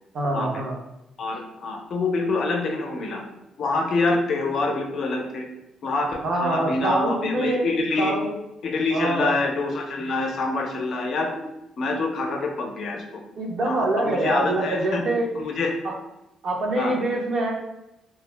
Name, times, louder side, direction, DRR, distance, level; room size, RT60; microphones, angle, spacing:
voice 1, 0.1-0.8 6.2-7.7 8.0-8.3 8.9-9.3 13.4-15.3 15.8-15.9 16.4-17.5, right 2 dB, 60° right, -1 dB, 0.6 m, -25 dB
voice 2, 1.2-3.2 3.6-5.5 5.8-8.2 8.6-11.4 11.8-13.2 13.6-15.0 15.4-15.7 16.8-17.0, left 3 dB, 60° left, 2 dB, 0.5 m, -26 dB
2.3 x 2.0 x 3.2 m, 0.89 s
cardioid pair, 90°, 0 cm